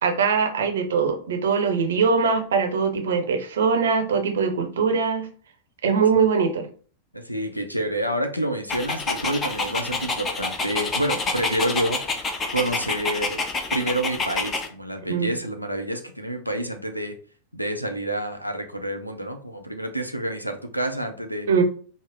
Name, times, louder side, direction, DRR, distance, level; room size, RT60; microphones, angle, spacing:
voice 1, 0.0-5.3 5.8-6.7 15.1-15.3 21.5-21.6, right 5 dB, 65° right, 5 dB, 0.6 m, -22 dB
voice 2, 7.1-13.4 13.7-17.2 17.5-21.5, right 1 dB, 90° left, 6 dB, 0.5 m, -28 dB
Dog, 8.7-14.7, left 3 dB, 20° left, 0.5 m, -28 dB
3.6 x 2.0 x 3.4 m, 0.43 s
figure-of-eight pair, 90°, 0 cm